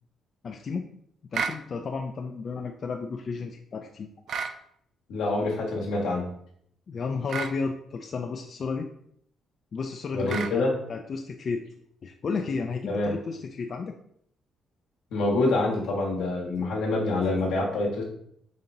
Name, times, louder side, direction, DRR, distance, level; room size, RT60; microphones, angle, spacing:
voice 1, 0.4-0.9 1.3-4.1 6.9-8.9 9.7-11.6 12.0-13.9, left 4 dB, 50° left, 4 dB, 0.3 m, -32 dB
sound 1, 1.3-1.6 4.3-4.6 7.3-7.6 10.3-10.6, right 6 dB, 65° right, 0.3 m, -31 dB
voice 2, 5.1-6.2 10.1-10.7 12.9-13.1 15.1-18.0, left 2 dB, 85° left, -2 dB, 1.1 m, -26 dB
5.1 x 2.9 x 2.6 m, 0.68 s
cardioid pair, 90°, 0 cm